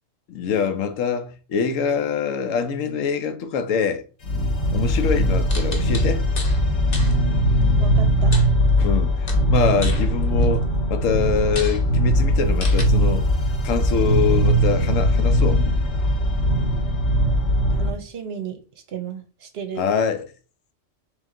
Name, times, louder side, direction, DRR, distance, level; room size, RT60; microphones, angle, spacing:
voice 1, 0.3-4.0 4.7-6.3 8.8-13.3 13.6-15.6 19.8-20.3, left 6 dB, 80° left, 1.0 m, -24 dB
sound 1, 4.2-17.9, equal, 60° left, 1.1 m, -20 dB
sound 2, 5.5-6.6 6.9-7.1 8.3-9.0 9.3-10.6 11.1-11.2 11.5-11.8 12.6-12.8, left 3 dB, 40° left, 0.8 m, -34 dB
voice 2, 7.8-8.3 17.7-18.6 18.9-19.8, right 7 dB, 60° right, 0.8 m, -33 dB
3.5 x 3.1 x 3.6 m
omnidirectional pair, 1.3 m